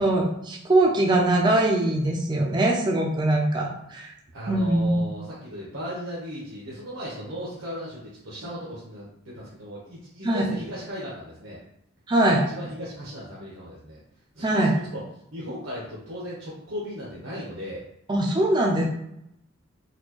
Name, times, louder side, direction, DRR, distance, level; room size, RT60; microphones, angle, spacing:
voice 1, 0.0-4.1 4.5-5.1 10.2-10.5 12.1-12.4 14.4-14.7 18.1-18.8, right 1 dB, 25° right, -1 dB, 0.4 m, -22 dB
voice 2, 4.3-11.6 12.2-14.0 14.3-15.0 15.3-17.8, equal, 75° right, -6 dB, 0.9 m, -36 dB
4.3 x 2.3 x 2.9 m, 0.79 s
head